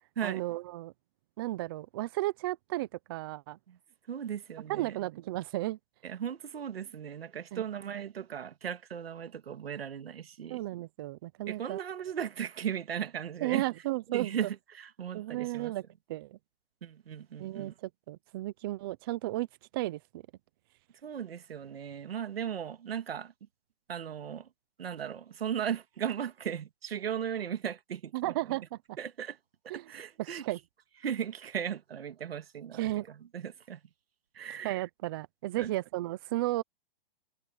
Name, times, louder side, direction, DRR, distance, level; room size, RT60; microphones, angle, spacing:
voice 1, 0.2-0.9 1.4-3.6 4.7-5.8 7.5-7.6 10.5-11.8 13.4-14.3 15.1-15.8 16.1-16.4 17.4-19.5 19.7-20.2 28.1-28.8 29.7-29.9 30.2-30.6 32.7-33.1 34.6-36.6, right 17 dB, 25° right, 0.5 m, -34 dB
voice 2, 4.1-5.0 6.0-10.6 11.5-13.7 14.1-15.7 16.8-17.7 21.0-23.3 23.9-24.5 24.8-28.6 29.0-29.4 29.6-30.4 31.0-33.8 34.3-34.8 35.6-35.7, right 8 dB, 90° right, 2.1 m, -37 dB
hypercardioid pair, 160°, 29 cm